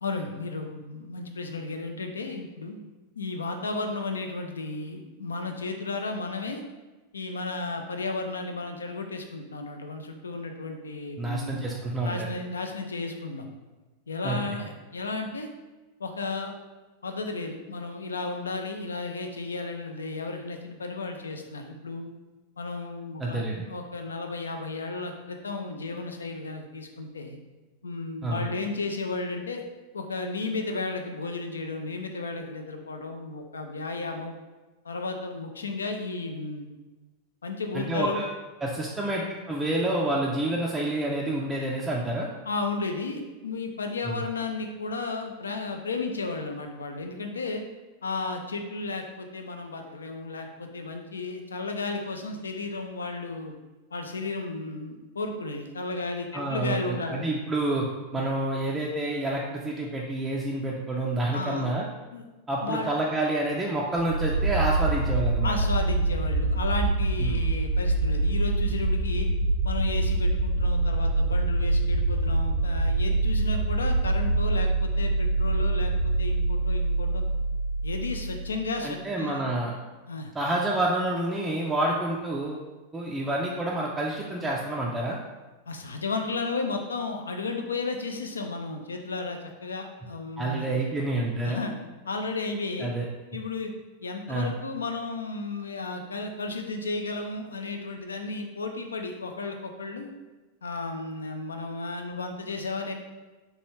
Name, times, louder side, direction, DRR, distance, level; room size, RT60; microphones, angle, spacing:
voice 1, 0.0-2.8 3.2-6.6 7.1-11.6 12.0-13.5 14.1-15.5 16.0-16.5 17.0-22.1 22.6-27.4 27.8-29.6 29.9-34.3 34.8-36.7 37.4-38.2 42.4-47.6 48.0-53.5 53.9-57.2 58.1-58.2 61.3-61.7 62.1-62.2 62.6-62.9 65.4-69.3 69.6-77.2 77.8-79.4 80.1-80.3 85.7-90.7 91.4-91.7 92.1-92.9 93.3-93.7 94.0-100.1 100.6-102.9, left 3 dB, 70° left, 4 dB, 0.3 m, -33 dB
voice 2, 11.2-12.3 14.2-14.6 23.2-23.7 28.2-28.4 37.7-38.3 38.6-42.3 44.0-44.2 56.3-57.8 58.1-61.8 62.5-65.5 67.2-67.4 78.8-79.7 80.3-82.6 82.9-85.2 90.4-91.6 92.8-93.1 94.3-94.5, right 1 dB, 10° right, -3 dB, 0.3 m, -28 dB
sound 1, 64.0-78.8, right 2 dB, 80° right, 0.7 m, -25 dB
2.9 x 2.3 x 3.0 m, 1.2 s
figure-of-eight pair, 90°, 0 cm